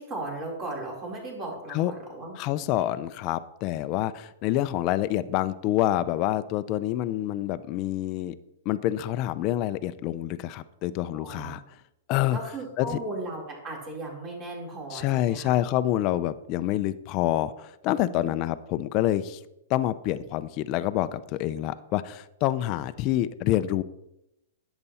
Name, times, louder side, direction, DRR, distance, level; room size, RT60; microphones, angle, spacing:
voice 1, 0.0-2.8 11.1-11.5 12.3-15.5 18.1-18.5, right 2 dB, 30° right, -1 dB, 4.5 m, -37 dB
voice 2, 2.4-8.4 8.7-11.6 12.1-12.4 12.8-13.0 14.9-19.4 19.7-23.8, left 13 dB, 40° left, 12 dB, 0.6 m, -27 dB
10.5 x 8.0 x 4.2 m, 0.85 s
hypercardioid pair, 135°, 0 cm